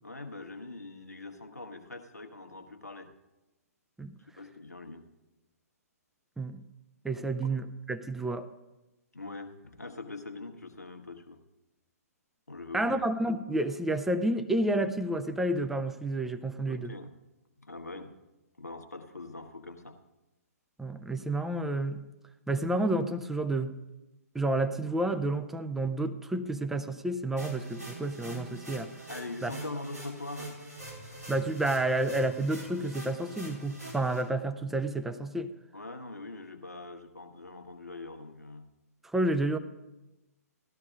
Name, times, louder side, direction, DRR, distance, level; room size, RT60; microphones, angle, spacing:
voice 1, 0.0-3.1 4.4-5.0 9.1-11.4 12.5-13.0 16.7-17.1 17.6-18.1 18.6-20.0 29.1-30.5 35.7-38.7, left 2 dB, 80° left, 5 dB, 1.2 m, -42 dB
voice 2, 7.0-8.5 12.7-16.9 20.8-22.0 22.5-23.7 24.3-28.9 29.4-29.5 31.3-35.5 39.0-39.6, right 1 dB, 5° right, 9 dB, 0.4 m, -30 dB
sound 1, 27.4-34.2, right 2 dB, 90° right, 4.5 m, -44 dB
17.5 x 13.0 x 2.5 m, 1.0 s
figure-of-eight pair, 125°, 9 cm